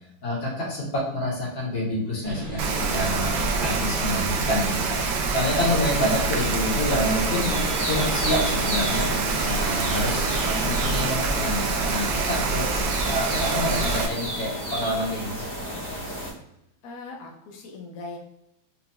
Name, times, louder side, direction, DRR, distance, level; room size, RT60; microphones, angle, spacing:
voice 1, 0.2-5.0 5.3-7.5 7.9-9.0 9.4-15.3, left 1 dB, 80° left, -6 dB, 2.3 m, -27 dB
sound 1, 2.2-11.0, right 1 dB, 40° right, 0.7 m, -36 dB
Rain, 2.6-14.1, right 4 dB, 70° right, 1.2 m, -26 dB
sound 2, 5.8-16.3, equal, 25° left, 0.6 m, -32 dB
voice 2, 16.8-18.2, left 3 dB, 60° left, -1 dB, 1.0 m, -39 dB
4.9 x 2.6 x 2.3 m, 0.81 s
omnidirectional pair, 2.1 m